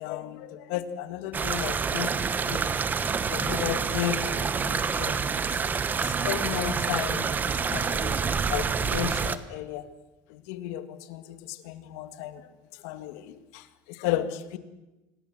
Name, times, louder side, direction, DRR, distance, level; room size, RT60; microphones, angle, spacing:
voice 1, 0.0-2.7 3.3-5.5 6.0-8.2 8.5-9.9 10.3-12.5 12.7-14.6, left 12 dB, 85° left, 10 dB, 1.9 m, -34 dB
sound 1, 1.3-9.4, right 5 dB, 20° right, 1.1 m, -27 dB
26.0 x 18.0 x 7.7 m, 1.1 s
cardioid pair, 150°, 8 cm